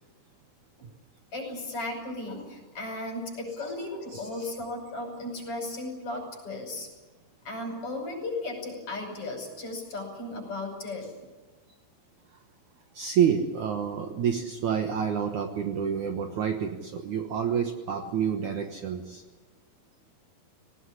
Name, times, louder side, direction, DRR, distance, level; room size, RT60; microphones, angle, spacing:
voice 1, 1.3-6.9 7.4-11.1, left 2 dB, 30° left, 2 dB, 6.5 m, -35 dB
voice 2, 4.1-4.5 12.9-19.2, right 8 dB, 85° right, 5 dB, 1.7 m, -28 dB
19.0 x 19.0 x 9.8 m, 1.2 s
omnidirectional pair, 5.3 m